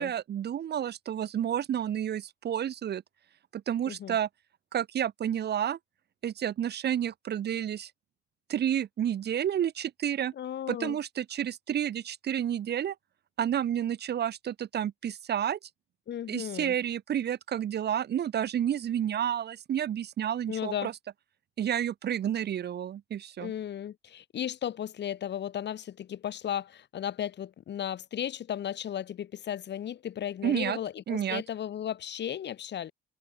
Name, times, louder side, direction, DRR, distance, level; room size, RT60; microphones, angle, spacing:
voice 1, 0.0-3.0 3.5-4.3 4.7-5.8 6.2-7.9 8.5-10.3 10.7-12.9 13.4-15.6 16.3-20.9 21.6-23.5 30.4-30.8 31.1-31.4, right 10 dB, 55° right, 1.0 m, -30 dB
voice 2, 3.9-4.2 10.3-11.0 16.1-16.8 20.5-20.9 23.4-32.9, left 10 dB, 60° left, 2.0 m, -35 dB
cardioid pair, 90°, 20 cm